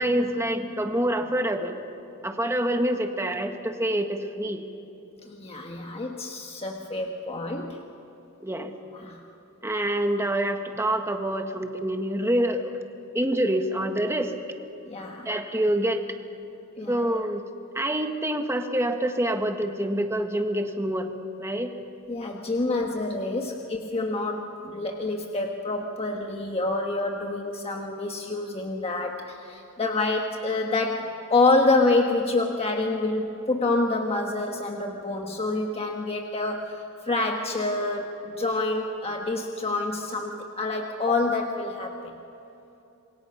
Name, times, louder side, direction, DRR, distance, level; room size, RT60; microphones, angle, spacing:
voice 1, 0.0-1.8 2.2-4.6 8.4-8.7 9.6-12.7 13.1-14.3 15.2-16.0 16.9-17.4 17.7-21.1 21.4-21.7, right 1 dB, 10° right, 5 dB, 1.6 m, -26 dB
voice 2, 5.3-7.8 8.9-9.2 14.9-15.3 16.8-17.0 22.1-42.1, left 2 dB, 25° left, 2 dB, 1.3 m, -27 dB
27.5 x 22.5 x 5.8 m, 2.9 s
head